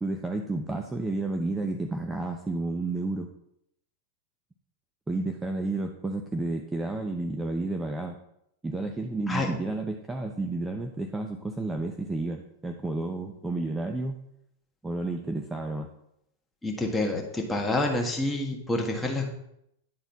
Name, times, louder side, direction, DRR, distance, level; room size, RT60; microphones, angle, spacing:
voice 1, 0.0-3.3 5.1-8.2 8.6-14.2 14.8-15.9, right 2 dB, 10° right, 4 dB, 0.7 m, -31 dB
voice 2, 16.6-19.3, left 2 dB, 10° left, 0 dB, 1.7 m, -28 dB
10.5 x 4.1 x 4.0 m, 0.77 s
hypercardioid pair, 115°, 0 cm